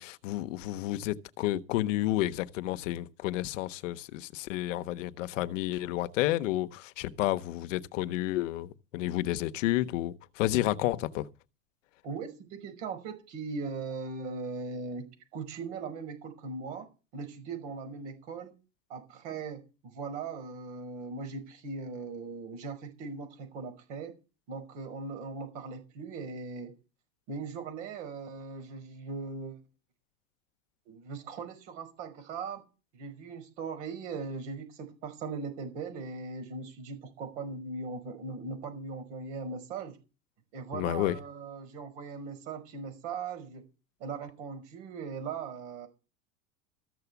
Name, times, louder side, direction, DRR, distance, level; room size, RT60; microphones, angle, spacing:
voice 1, 0.0-11.3 40.7-41.2, left 15 dB, 70° left, 0.9 m, -31 dB
voice 2, 12.0-16.9 17.1-18.5 18.9-24.1 24.5-26.8 27.3-29.6 30.9-32.6 32.9-40.0 40.5-43.6 44.0-45.9, right 4 dB, 60° right, 5.6 m, -39 dB
14.5 x 7.0 x 8.2 m
supercardioid pair, 175°, 39 cm